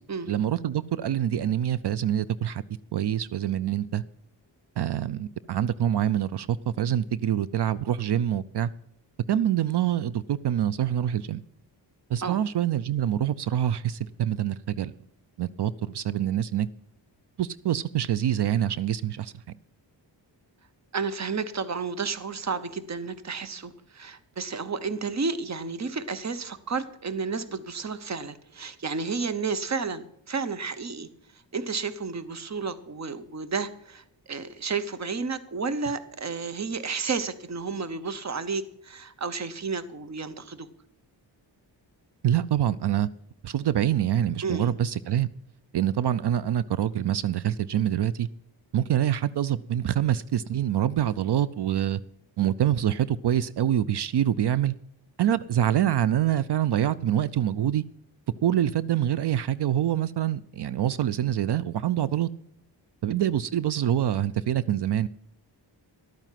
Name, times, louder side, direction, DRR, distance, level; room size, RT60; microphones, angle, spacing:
voice 1, 0.3-2.6 2.9-4.0 4.8-8.7 9.3-11.4 12.1-14.9 15.4-16.7 17.4-19.3 42.2-43.1 43.4-45.3 45.7-48.3 48.7-52.0 52.4-54.7 55.2-57.8 58.4-62.3 63.0-65.1, right 11 dB, 65° right, 18 dB, 0.5 m, -25 dB
voice 2, 20.9-31.1 31.5-40.7 44.4-44.6, right 4 dB, 35° right, 13 dB, 0.9 m, -32 dB
12.0 x 9.1 x 5.8 m, 0.77 s
wide cardioid pair, 95°, 45 cm